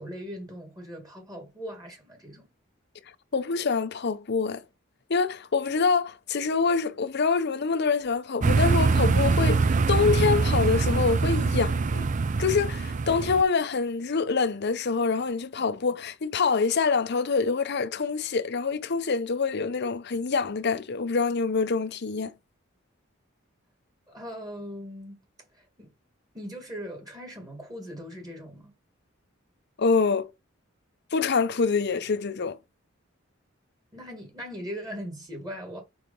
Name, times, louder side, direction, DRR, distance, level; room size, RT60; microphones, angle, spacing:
voice 1, 0.0-2.5 24.1-25.2 25.5-25.9 26.3-28.7 33.9-35.8, equal, 20° right, 1.9 m, -39 dB
voice 2, 3.3-4.6 5.1-12.1 12.4-22.3 29.8-30.3 31.1-32.6, left 4 dB, 55° left, 0.6 m, -25 dB
sound 1, 8.4-13.4, right 4 dB, 40° right, 0.4 m, -23 dB
4.8 x 4.7 x 5.2 m
head